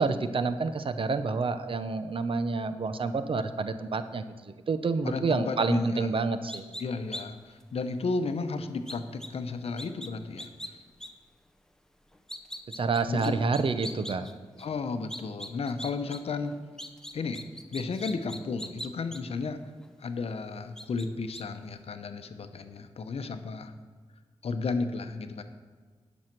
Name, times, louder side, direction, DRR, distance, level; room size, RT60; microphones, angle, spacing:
voice 1, 0.0-6.6 12.7-14.3, right 4 dB, 55° right, 11 dB, 0.7 m, -28 dB
voice 2, 5.0-6.1 6.8-10.8 13.1-13.4 14.6-16.5 17.1-17.4 17.7-19.6 20.0-23.7 24.4-25.4, left 4 dB, 70° left, 9 dB, 0.8 m, -33 dB
sound 1, 6.5-6.8 7.1-7.2 7.6-7.7 8.9-9.3 9.8-10.1 10.4-10.7 11.0-11.1 12.1-14.3 14.6-14.7 15.1-16.2 16.4-19.2 19.8-19.9 20.8-21.1 21.3-21.4, left 1 dB, 5° left, 0.8 m, -40 dB
10.5 x 6.3 x 6.0 m, 1.5 s
cardioid pair, 75°, 11 cm